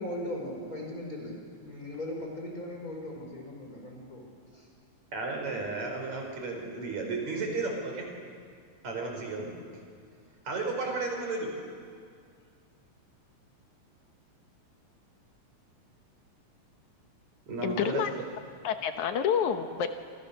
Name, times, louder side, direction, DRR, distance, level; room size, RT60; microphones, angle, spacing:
voice 1, 0.0-1.4 1.6-4.2 4.5-4.7, left 1 dB, 25° left, 0 dB, 5.5 m, -38 dB
voice 2, 5.1-8.1 8.8-9.5 10.5-11.6 17.5-18.0, right 3 dB, 65° right, 2 dB, 5.9 m, -33 dB
voice 3, 17.6-18.1 18.6-19.9, left 8 dB, 75° left, 7 dB, 2.5 m, -28 dB
28.0 x 26.5 x 6.8 m, 2.1 s
omnidirectional pair, 3.5 m